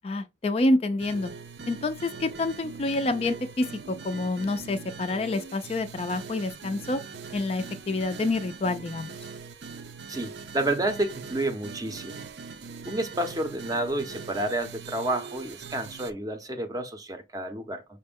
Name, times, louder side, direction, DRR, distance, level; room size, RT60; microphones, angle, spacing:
voice 1, 0.0-1.3 1.7-7.0 7.3-9.1, left 2 dB, 35° left, 0.3 m, -28 dB
sound 1, 1.0-16.1, right 5 dB, 70° right, 0.5 m, -42 dB
voice 2, 10.1-12.2 12.9-17.8, right 1 dB, 20° right, 0.5 m, -30 dB
5.8 x 2.1 x 3.4 m
head